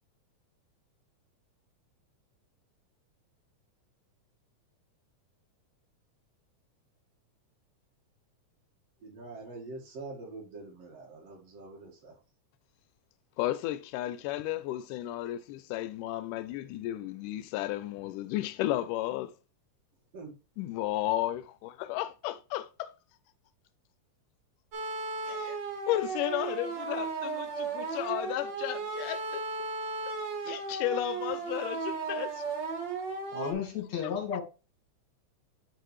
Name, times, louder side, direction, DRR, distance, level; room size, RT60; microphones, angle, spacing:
voice 1, 9.0-12.2 20.1-20.3, right 3 dB, 55° right, 2.7 m, -44 dB
voice 2, 13.4-19.3 20.6-22.9 25.3-25.6 25.9-29.7 30.4-32.4, left 15 dB, 85° left, 2.1 m, -33 dB
sound 1, 24.7-33.5, right 4 dB, 85° right, 1.0 m, -35 dB
voice 3, 33.3-34.4, left 7 dB, 65° left, 3.1 m, -33 dB
7.9 x 4.6 x 3.1 m
omnidirectional pair, 3.6 m